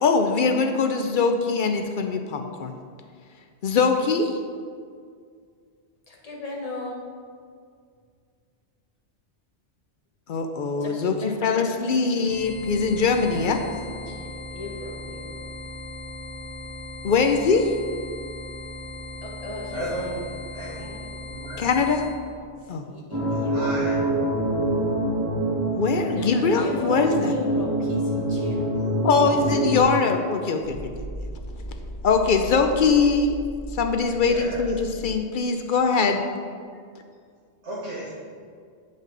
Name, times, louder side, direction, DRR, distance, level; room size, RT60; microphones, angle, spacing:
voice 1, 0.0-2.8 3.6-4.4 10.3-11.2 11.4-13.6 17.0-17.7 21.6-22.0 22.7-22.8 25.7-27.3 29.0-31.1 32.0-33.4 33.7-36.2, left 4 dB, 60° left, 5 dB, 0.6 m, -22 dB
voice 2, 6.1-7.0 10.8-12.0 13.2-15.4 19.2-20.1 20.8-21.0 22.8-23.8 26.1-28.6 29.0-29.3, left 2 dB, 35° left, -2 dB, 1.2 m, -36 dB
sound 1, 12.2-22.2, left 1 dB, ahead, 0.4 m, -38 dB
voice 3, 19.7-20.2 20.5-20.8 21.3-21.6 23.5-24.0 34.3-34.6 37.6-38.1, right 1 dB, 80° right, -7 dB, 1.6 m, -33 dB
sound 2, 23.1-29.8, right 1 dB, 20° right, 1.7 m, -25 dB
sound 3, 30.6-35.5, right 1 dB, 80° left, 2.0 m, -37 dB
7.7 x 5.3 x 3.8 m, 2.1 s
omnidirectional pair, 1.2 m